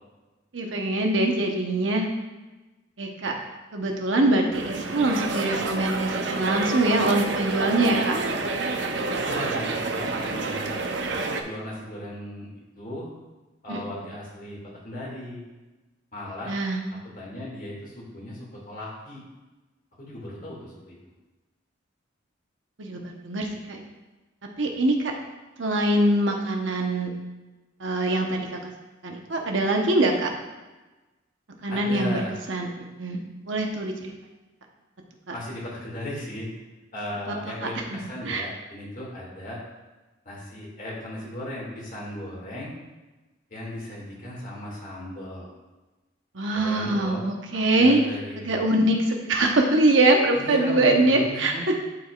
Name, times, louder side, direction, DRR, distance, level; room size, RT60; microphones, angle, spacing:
voice 1, 0.5-2.0 3.0-3.3 3.7-4.6 4.9-8.2 13.7-13.8 16.5-16.8 22.8-23.8 24.6-25.1 25.6-27.1 27.8-28.7 29.0-30.3 31.6-32.2 32.5-32.7 33.0-33.2 33.5-34.1 35.3-35.4 37.6-38.0 38.2-38.4 46.3-48.0 48.5-51.5, right 2 dB, 85° right, 1 dB, 1.0 m, -23 dB
sound 1, 4.5-11.4, right 3 dB, 65° right, 0.6 m, -28 dB
voice 2, 9.2-10.7 11.4-12.5 12.8-13.1 13.6-15.4 16.1-16.5 17.1-19.2 20.0-21.1 31.7-32.3 35.3-36.5 36.9-39.6 40.2-42.7 43.5-45.5 46.5-47.2 47.5-48.7 50.3-51.6, left 1 dB, 45° left, -4 dB, 2.1 m, -36 dB
12.0 x 4.8 x 2.4 m, 1.1 s
head